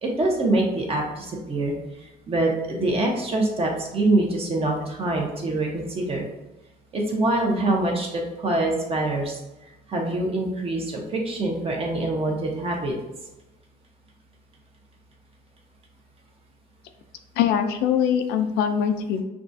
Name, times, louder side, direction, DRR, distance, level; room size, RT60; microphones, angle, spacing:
voice 1, 0.0-1.7 2.3-6.3 6.9-9.4 9.9-12.9, right 2 dB, 35° right, 0 dB, 1.0 m, -24 dB
voice 2, 17.4-19.2, left 8 dB, 90° left, 7 dB, 0.4 m, -22 dB
5.8 x 2.4 x 2.6 m, 1.0 s
cardioid pair, 110°, 17 cm